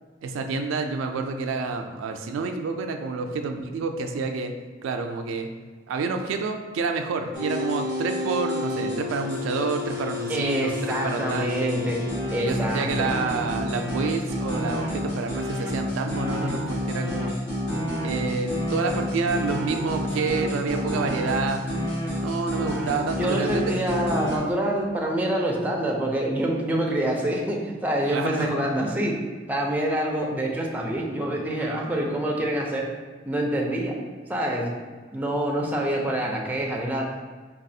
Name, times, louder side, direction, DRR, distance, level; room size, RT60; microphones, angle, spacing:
voice 1, 0.2-4.5 4.8-5.5 5.9-10.8 11.0-11.7 12.4-17.3 18.0-21.6 22.2-23.6 28.1-28.5, right 4 dB, 85° right, 5 dB, 0.3 m, -28 dB
sound 1, 7.3-24.4, left 1 dB, 60° left, 1.1 m, -29 dB
voice 2, 10.3-13.1 23.1-29.2 29.5-32.9 33.3-34.0 34.3-34.7 35.1-37.1, right 1 dB, 10° right, -1 dB, 0.4 m, -26 dB
4.0 x 2.4 x 2.6 m, 1.4 s
head